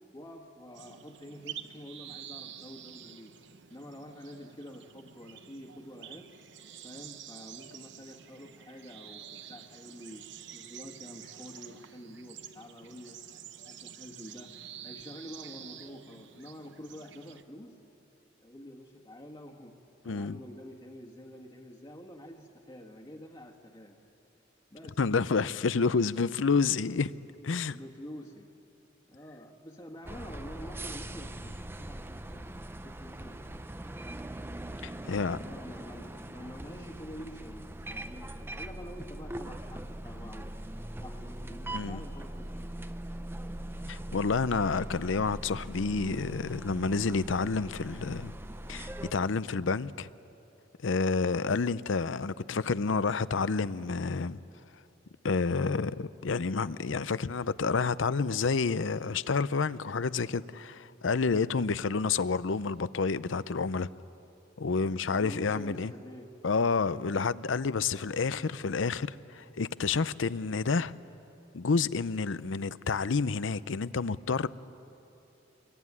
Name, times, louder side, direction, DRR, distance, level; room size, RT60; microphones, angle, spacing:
voice 1, 0.1-3.3 3.7-6.3 6.8-10.3 10.5-13.2 13.6-14.5 14.8-17.7 18.4-19.7 20.0-24.0 24.7-25.0 27.7-28.5 29.1-33.6 35.0-40.5 41.0-42.9 43.1-43.2 64.8-66.3, equal, 25° left, 1.6 m, -47 dB
sound 1, 0.7-17.4, right 9 dB, 65° right, 0.9 m, -48 dB
voice 2, 20.1-20.4 25.0-27.1 27.4-27.8 34.8-35.4 41.7-42.0 43.9-48.3 48.7-50.1 50.8-54.4 55.2-63.9 64.6-65.9 66.4-70.9 71.5-74.5, left 4 dB, 80° left, 0.6 m, -29 dB
sound 2, 30.0-49.1, right 1 dB, 10° right, 0.6 m, -41 dB
25.5 x 22.5 x 9.7 m
head